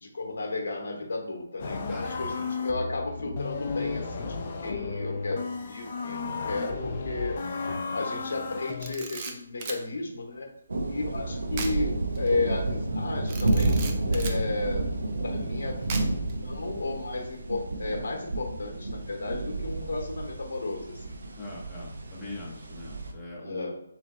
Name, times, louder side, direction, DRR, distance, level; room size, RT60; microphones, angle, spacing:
voice 1, 0.0-7.4 7.9-10.5 10.9-14.8 15.2-15.8 16.4-21.0 23.4-23.7, left 3 dB, 60° left, 2 dB, 1.0 m, -33 dB
sound 1, 1.6-8.9, left 4 dB, 40° left, 0.6 m, -33 dB
Camera, 8.7-9.8 11.5-11.8 12.2-12.3 13.3-14.4 15.9-16.3, right 5 dB, 30° right, 0.6 m, -37 dB
sound 2, 10.7-23.1, right 2 dB, 70° right, 0.7 m, -31 dB
voice 2, 21.4-23.7, left 2 dB, 10° left, -6 dB, 1.0 m, -41 dB
3.7 x 3.3 x 3.6 m, 0.78 s
figure-of-eight pair, 155°, 0 cm